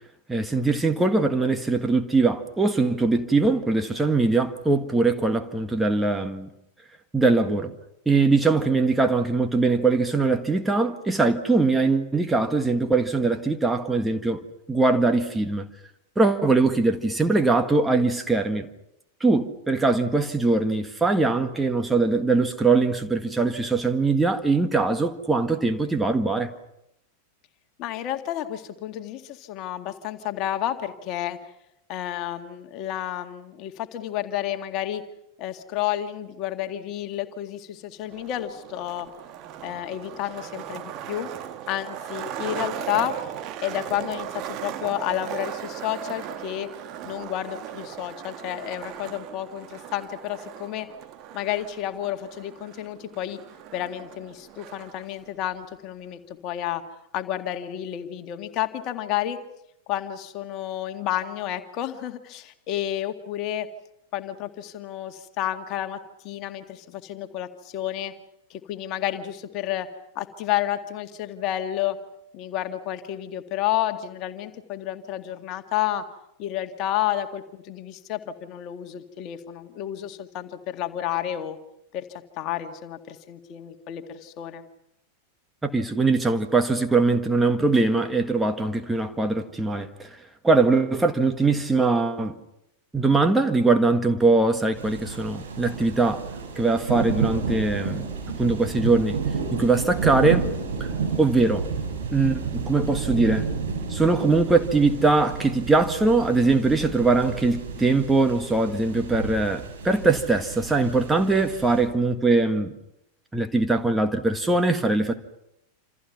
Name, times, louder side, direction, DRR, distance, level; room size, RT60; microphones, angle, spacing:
voice 1, 0.3-6.5 7.1-7.7 8.0-14.4 14.7-15.7 16.1-18.7 19.2-26.5 85.6-90.2 90.4-92.3 92.9-96.2 96.5-98.1 98.4-99.2 99.5-100.5 100.8-100.9 101.2-101.7 102.1-103.5 103.9-112.7 113.3-115.1, right 3 dB, 10° right, 1.7 m, -22 dB
voice 2, 27.8-31.4 31.9-35.0 35.4-39.1 39.6-41.3 41.7-43.2 43.6-46.7 47.0-50.9 51.3-53.4 53.7-56.8 57.1-59.4 59.9-63.7 64.1-66.0 66.2-68.1 68.5-69.9 70.2-72.0 72.3-76.1 76.4-81.6 81.9-84.6, left 12 dB, 40° left, 2.0 m, -30 dB
Skateboard, 38.0-55.1, right 10 dB, 35° right, 1.7 m, -38 dB
sound 1, 94.8-111.8, right 5 dB, 60° right, 7.2 m, -31 dB
28.0 x 27.5 x 5.9 m
figure-of-eight pair, 90°, 0 cm